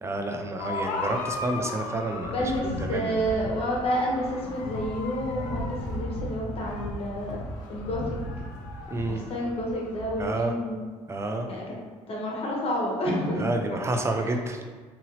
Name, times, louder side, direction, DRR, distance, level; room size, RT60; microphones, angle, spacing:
voice 1, 0.0-3.2 8.9-9.3 10.2-10.5 11.1-11.5 13.4-14.6, right 2 dB, 20° right, 4 dB, 0.4 m, -29 dB
sound 1, 0.6-10.4, left 2 dB, 70° left, 0.5 m, -35 dB
voice 2, 2.2-7.4 7.7-8.5 9.1-10.8 11.5-11.6 12.1-13.5 14.2-14.4, equal, 50° left, -3 dB, 1.0 m, -29 dB
2.9 x 2.6 x 2.8 m, 1.4 s
supercardioid pair, 75°, 13 cm